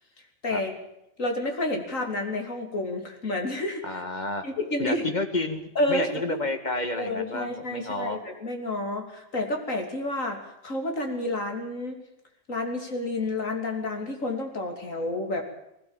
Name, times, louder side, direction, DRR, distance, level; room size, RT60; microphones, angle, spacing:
voice 1, 1.2-4.0 4.4-5.1 5.8-6.4 7.0-12.0 12.5-15.4, left 1 dB, 70° left, 4 dB, 3.5 m, -30 dB
voice 2, 3.8-4.4 4.8-8.2, left 2 dB, 35° left, 7 dB, 2.1 m, -30 dB
19.5 x 16.5 x 9.0 m, 0.83 s
omnidirectional pair, 1.4 m